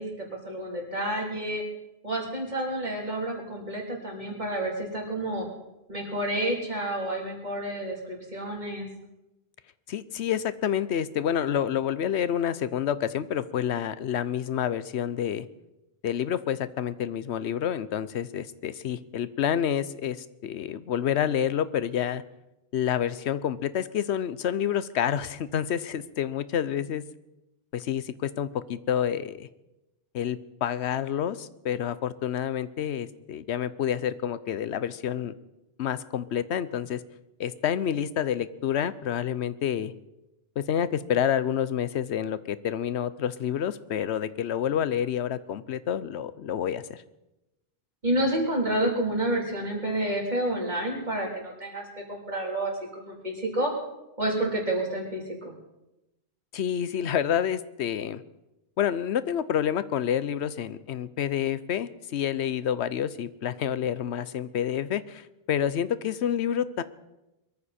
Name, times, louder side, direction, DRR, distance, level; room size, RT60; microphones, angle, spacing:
voice 1, 0.0-1.6 2.0-5.5 5.9-8.9 48.0-53.7 54.2-55.5, right 1 dB, 45° right, -1 dB, 3.6 m, -29 dB
voice 2, 9.9-15.5 16.0-22.2 22.7-27.0 27.7-29.5 30.1-35.3 35.8-37.0 37.4-39.9 40.6-47.0 56.5-58.2 58.8-66.8, left 9 dB, 90° left, 15 dB, 1.0 m, -28 dB
22.0 x 14.0 x 4.3 m, 0.95 s
omnidirectional pair, 1.1 m